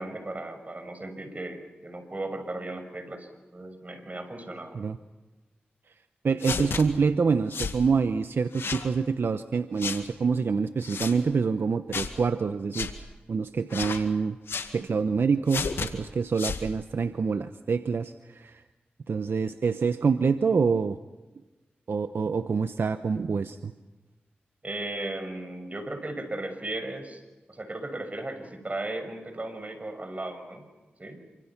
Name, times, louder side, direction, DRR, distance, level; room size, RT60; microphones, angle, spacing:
voice 1, 0.0-4.8 24.6-27.2 27.5-30.7 31.0-31.2, right 2 dB, 40° right, 8 dB, 6.2 m, -36 dB
voice 2, 6.2-12.9 13.3-14.4 14.7-18.6 19.1-21.0 21.9-23.7, right 5 dB, 75° right, 10 dB, 0.9 m, -26 dB
sound 1, 6.4-6.8 7.5-7.8 8.5-8.9 9.8-10.0 10.8-11.1 11.9-12.1 12.7-12.9 13.7-14.0 14.5-14.7 15.5-15.9 16.3-16.6, left 5 dB, 85° left, 2.1 m, -32 dB
28.5 x 25.5 x 6.0 m, 1.1 s
cardioid pair, 45°, 4 cm